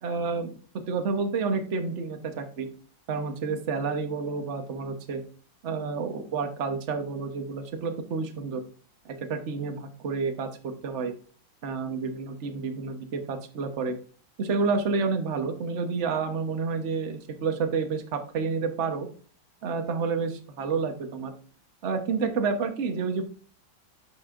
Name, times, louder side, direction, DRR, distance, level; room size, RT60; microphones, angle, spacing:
voice 1, 0.0-0.6 0.9-2.7 3.1-5.2 5.6-8.6 9.0-10.5 10.8-11.1 11.6-14.0 14.4-19.1 19.6-21.3 21.8-23.2, right 4 dB, 45° right, 6 dB, 1.2 m, -29 dB
10.5 x 6.3 x 2.5 m, 0.42 s
omnidirectional pair, 2.2 m